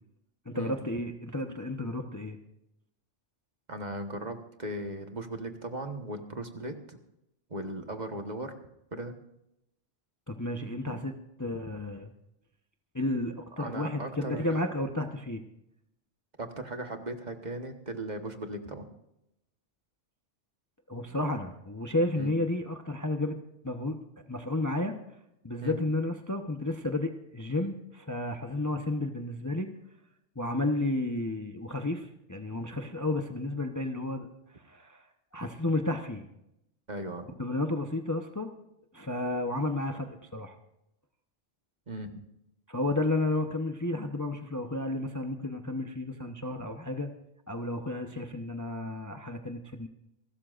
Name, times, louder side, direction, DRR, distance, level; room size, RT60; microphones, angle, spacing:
voice 1, 0.5-2.4 10.3-11.1 11.4-12.1 12.9-15.4 20.9-23.4 23.6-25.0 25.4-29.7 30.4-34.3 34.5-35.0 35.3-36.2 37.4-38.5 38.9-40.6 42.7-47.1 47.5-49.9, left 2 dB, 15° left, 5 dB, 0.8 m, -32 dB
voice 2, 3.7-7.0 7.5-8.5 8.9-9.1 13.6-14.6 16.4-18.9 22.2-22.3 25.6-25.8 36.9-37.3 41.9-42.1, right 1 dB, 35° right, 6 dB, 1.4 m, -37 dB
28.5 x 13.0 x 2.5 m, 0.83 s
omnidirectional pair, 1.3 m